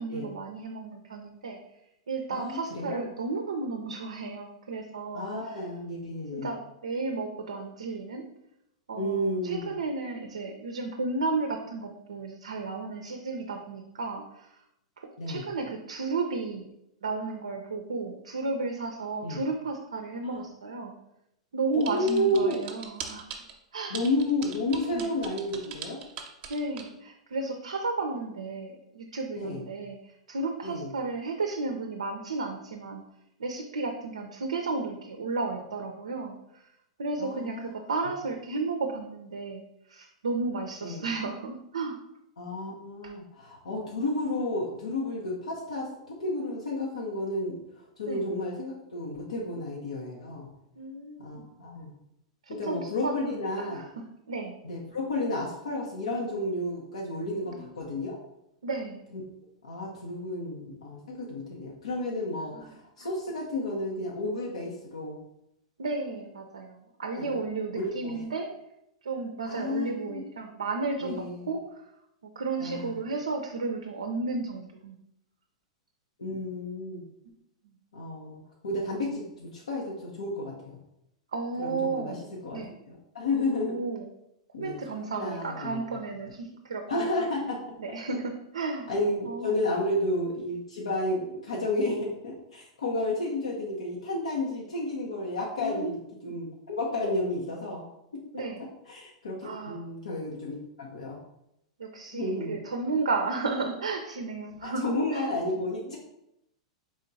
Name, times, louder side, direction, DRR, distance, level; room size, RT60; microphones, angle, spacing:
voice 1, 0.0-1.6 2.1-5.3 6.3-8.2 8.9-14.6 15.0-16.7 17.0-20.9 21.5-23.3 23.7-24.0 24.9-25.1 26.5-33.0 33.4-36.6 37.0-39.6 39.9-42.0 43.0-43.1 48.1-48.3 50.8-51.5 52.5-53.8 54.3-54.6 57.5-57.6 58.6-59.0 62.5-62.7 65.8-68.5 69.0-71.6 72.4-75.0 81.3-82.2 82.5-82.7 83.6-84.1 84.6-86.8 87.8-88.9 89.2-89.6 95.6-96.3 98.3-98.6 99.4-99.8 101.8-104.8 105.1-105.3, right 3 dB, 80° right, 3 dB, 0.5 m, -33 dB
voice 2, 2.3-3.0 5.1-6.5 9.0-9.7 15.2-15.5 19.2-19.4 20.2-20.4 21.7-22.6 23.9-26.0 29.3-29.6 30.6-30.9 37.2-37.8 40.8-41.1 42.4-50.5 51.2-51.9 52.5-53.8 54.6-58.2 59.1-59.2 59.6-65.2 67.1-67.4 67.7-68.2 69.5-70.2 71.0-71.5 72.6-73.0 76.2-77.0 77.9-80.8 81.6-83.8 84.5-84.8 85.1-86.0 86.9-87.8 88.9-97.8 98.1-98.2 98.9-101.2 102.1-102.6 102.9-103.0 104.6-106.0, left 1 dB, 75° left, -3 dB, 0.8 m, -32 dB
sound 1, 21.8-23.5 23.9-26.9, right 8 dB, 40° right, 0.7 m, -40 dB
4.4 x 3.6 x 2.6 m, 0.82 s
figure-of-eight pair, 100°, 3 cm